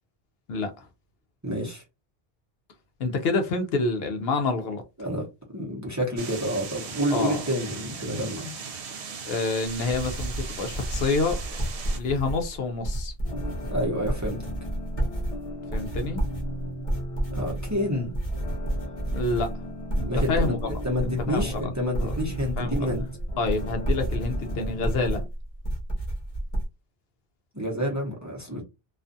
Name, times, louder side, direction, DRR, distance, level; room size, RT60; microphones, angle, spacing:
voice 1, 0.5-0.9 3.0-4.8 7.1-7.4 9.3-11.4 11.9-13.1 15.7-16.2 19.1-19.5 19.9-21.7 22.0-22.1 22.6-22.9 23.4-25.2, left 3 dB, 70° left, 0.8 m, -28 dB
voice 2, 1.4-1.8 5.0-5.3 5.5-8.5 13.7-14.4 17.3-18.1 20.0-23.0 27.5-28.6, equal, 20° right, 0.7 m, -29 dB
sound 1, 6.2-12.0, right 6 dB, 80° right, 0.9 m, -38 dB
sound 2, 9.8-26.7, right 1 dB, 35° left, 0.9 m, -31 dB
sound 3, 13.2-25.2, left 1 dB, 50° left, 0.4 m, -38 dB
2.4 x 2.3 x 2.6 m
omnidirectional pair, 1.1 m